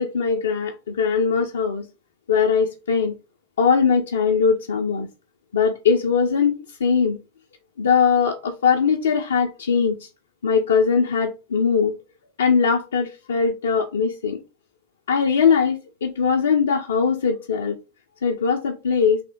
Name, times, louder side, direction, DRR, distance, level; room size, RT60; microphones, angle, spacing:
voice 1, 0.0-1.9 2.3-3.1 3.6-5.1 5.5-7.2 7.8-10.1 10.4-11.9 12.4-14.4 15.1-17.8 18.2-19.2, left 6 dB, 65° left, 0.5 m, -20 dB
3.5 x 2.7 x 4.2 m
figure-of-eight pair, 90°, 0 cm